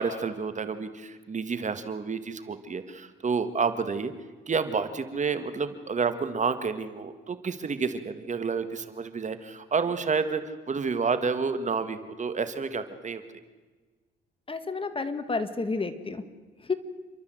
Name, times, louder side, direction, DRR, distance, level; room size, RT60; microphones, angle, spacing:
voice 1, 0.0-4.1 4.5-10.4 10.7-13.2, right 5 dB, 40° right, 10 dB, 1.8 m, -29 dB
voice 2, 14.5-16.2 16.7-16.8, left 3 dB, 25° left, 11 dB, 1.8 m, -30 dB
29.0 x 12.5 x 7.9 m, 1.4 s
cardioid pair, 90°, 20 cm